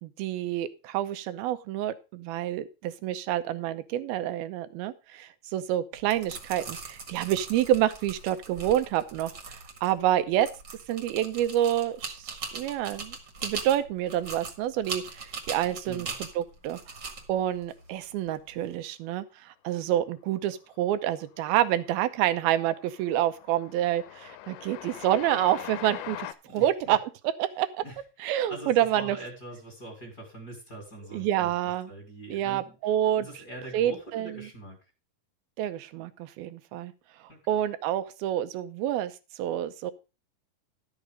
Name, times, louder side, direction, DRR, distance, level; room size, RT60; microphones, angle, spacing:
voice 1, 0.0-10.5 10.9-13.2 13.4-16.1 16.4-16.8 17.3-26.3 26.5-27.0 27.4-27.8 28.2-29.2 31.1-31.9 32.3-33.3 33.7-34.4 35.6-36.9 37.5-39.9, right 12 dB, 80° right, 11 dB, 2.7 m, -28 dB
sound 1, 5.9-18.7, right 4 dB, 40° right, 1.8 m, -41 dB
voice 2, 15.8-16.2 26.5-27.0 27.8-28.0 28.5-32.8 33.2-34.8 37.3-37.4, right 1 dB, 30° left, 0 dB, 2.8 m, -43 dB
Train, 20.6-21.1 21.4-26.3, left 12 dB, 90° left, 2.7 m, -42 dB
12.0 x 6.6 x 5.0 m, 0.30 s
omnidirectional pair, 4.3 m